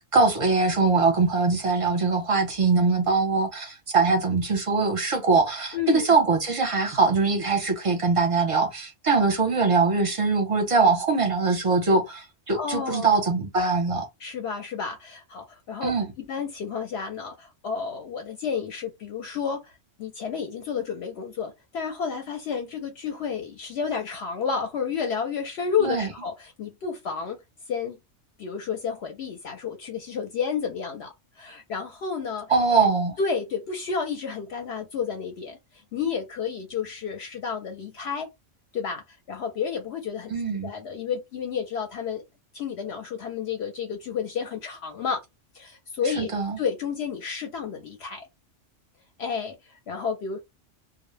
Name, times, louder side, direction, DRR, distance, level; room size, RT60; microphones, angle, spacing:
voice 1, 0.1-14.1 15.8-16.1 25.8-26.1 32.5-33.2 40.3-40.7 46.2-46.6, right 4 dB, 35° right, 0.6 m, -22 dB
voice 2, 5.7-6.2 12.6-13.2 14.2-19.7 20.0-27.4 27.7-28.0 28.4-32.5 33.2-38.3 38.7-40.3 40.6-42.2 42.5-45.2 45.5-48.3 49.2-50.4, left 6 dB, 65° left, 0.8 m, -31 dB
2.1 x 2.0 x 3.1 m
omnidirectional pair, 1.3 m